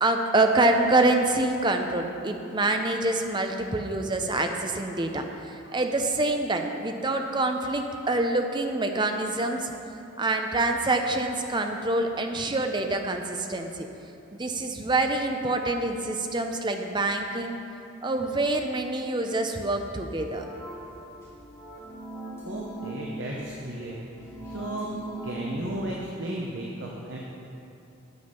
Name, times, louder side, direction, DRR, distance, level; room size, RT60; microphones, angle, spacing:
voice 1, 0.0-9.7 10.2-13.9 14.3-17.6 18.0-20.5, right 2 dB, 20° right, 5 dB, 0.6 m, -26 dB
sound 1, 20.2-25.8, right 1 dB, 15° left, 1.9 m, -40 dB
voice 2, 22.4-24.9 25.2-27.2, right 1 dB, 65° right, -3 dB, 1.0 m, -34 dB
9.6 x 7.2 x 5.7 m, 2.8 s
head